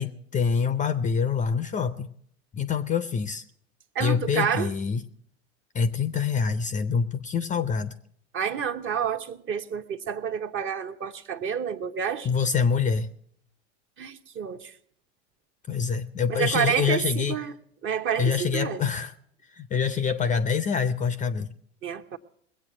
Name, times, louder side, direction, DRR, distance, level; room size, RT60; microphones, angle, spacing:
voice 1, 0.0-2.1 2.5-3.4 4.0-5.0 5.7-7.9 12.2-13.1 15.7-17.4 18.2-19.1 19.5-21.5, left 6 dB, 20° left, 0.5 m, -26 dB
voice 2, 3.9-4.7 8.3-12.3 14.0-14.7 16.3-17.5 17.8-18.8 21.8-22.2, right 7 dB, 35° right, 1.0 m, -29 dB
20.5 x 8.3 x 6.1 m
hypercardioid pair, 85°, 36 cm